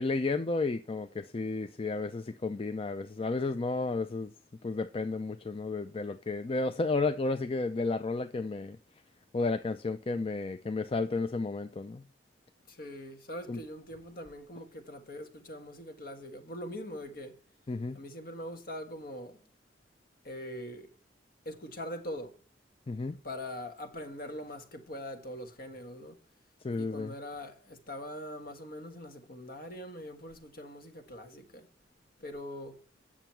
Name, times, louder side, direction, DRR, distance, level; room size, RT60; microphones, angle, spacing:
voice 1, 0.0-4.3 4.6-8.8 9.3-12.0 13.5-13.6 17.7-18.0 22.9-23.2 26.6-27.1, left 3 dB, 30° left, 0.5 m, -32 dB
voice 2, 12.7-17.4 17.9-19.4 20.2-20.9 21.4-22.4 23.2-26.2 26.8-31.7 32.2-32.8, left 1 dB, 55° left, 1.5 m, -42 dB
9.0 x 7.1 x 4.5 m
head